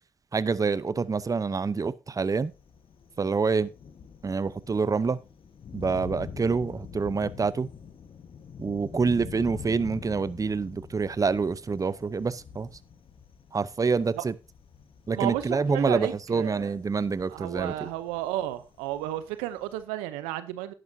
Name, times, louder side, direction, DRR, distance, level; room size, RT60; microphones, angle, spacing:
voice 1, 0.3-2.5 3.2-3.7 4.2-5.2 5.7-7.7 8.6-12.7 13.5-14.3 15.1-17.9, right 4 dB, 35° right, 0.7 m, -27 dB
Thunder, 2.3-19.8, left 7 dB, 55° left, 1.3 m, -46 dB
voice 2, 15.1-16.7 17.3-20.7, right 14 dB, 90° right, 0.7 m, -32 dB
11.0 x 10.5 x 2.7 m
hypercardioid pair, 45°, 11 cm